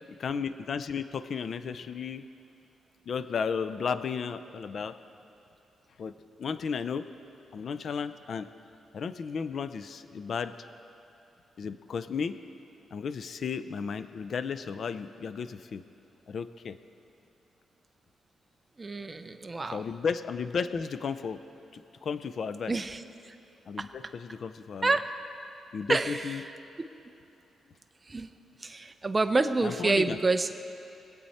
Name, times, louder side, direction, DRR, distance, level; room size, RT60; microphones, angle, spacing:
voice 1, 0.1-2.3 3.1-5.0 6.0-6.1 6.4-7.1 7.5-8.5 8.9-10.5 11.6-12.4 12.9-15.8 16.3-16.8 19.7-21.4 21.7-22.7 23.7-25.0 25.7-26.4 29.6-30.2, left 6 dB, 50° left, 12 dB, 0.4 m, -34 dB
voice 2, 18.8-19.8 22.7-23.0 24.8-25.0 25.9-26.2 28.1-28.3 28.6-30.5, right 3 dB, 20° right, 8 dB, 0.5 m, -27 dB
23.0 x 8.4 x 4.2 m, 2.7 s
wide cardioid pair, 145°, 0 cm